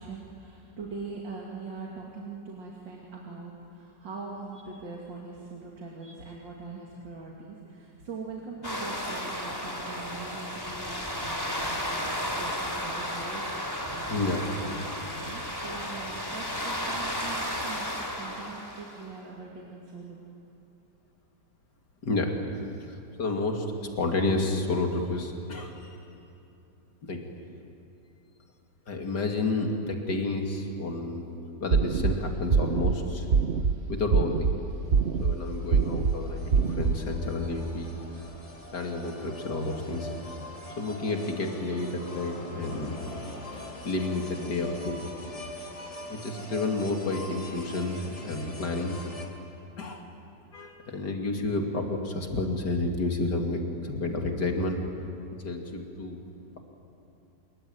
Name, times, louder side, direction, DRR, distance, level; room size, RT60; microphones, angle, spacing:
voice 1, 0.0-11.0 11.2-12.1 12.4-20.2, right 4 dB, 85° right, -3 dB, 3.2 m, -42 dB
sound 1, 8.6-19.1, equal, 10° left, 3.0 m, -33 dB
voice 2, 14.1-14.4 22.0-22.4 22.9-25.9 27.0-27.3 28.9-31.2 31.6-33.3 33.9-34.5 35.2-37.9 38.7-40.1 40.8-43.1 43.8-45.0 46.1-49.0 49.8-50.0 50.5-54.8 55.4-56.2, left 2 dB, 65° left, 2 dB, 3.2 m, -30 dB
sound 2, 31.7-32.1 32.5-32.9 33.3-33.7 34.1-34.5 34.9-35.3 35.7-36.1 36.5-36.9, right 6 dB, 45° right, 1.0 m, -23 dB
sound 3, 34.8-49.3, left 1 dB, 40° left, 3.4 m, -43 dB
26.5 x 23.0 x 9.4 m, 2.8 s
omnidirectional pair, 2.0 m